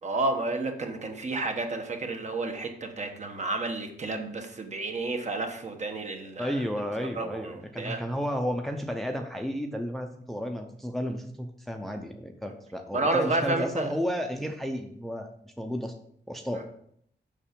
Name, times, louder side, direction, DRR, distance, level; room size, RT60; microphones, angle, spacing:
voice 1, 0.0-6.6 7.0-8.0 12.9-13.9 16.5-16.6, right 2 dB, 40° right, 4 dB, 1.2 m, -31 dB
voice 2, 6.4-15.9 16.3-16.6, equal, ahead, 4 dB, 0.6 m, -32 dB
7.2 x 5.7 x 5.2 m, 0.67 s
wide cardioid pair, 155°, 18 cm